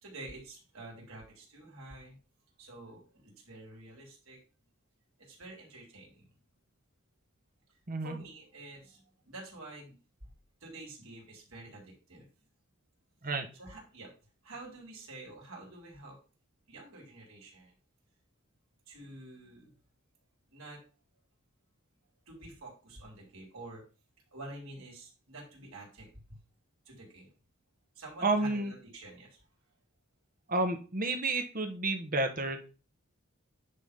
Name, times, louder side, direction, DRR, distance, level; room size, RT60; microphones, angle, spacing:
voice 1, 0.0-2.2 2.6-4.4 5.2-6.3 8.0-10.0 10.6-12.3 13.5-14.1 14.4-16.2 16.7-17.7 18.9-19.8 20.5-20.8 22.3-23.8 24.3-26.4 26.9-27.3 28.0-29.4, right 2 dB, 75° right, -2 dB, 3.9 m, -48 dB
voice 2, 28.2-28.7 30.5-32.7, right 2 dB, 40° right, 6 dB, 1.3 m, -30 dB
9.9 x 3.9 x 5.2 m, 0.35 s
head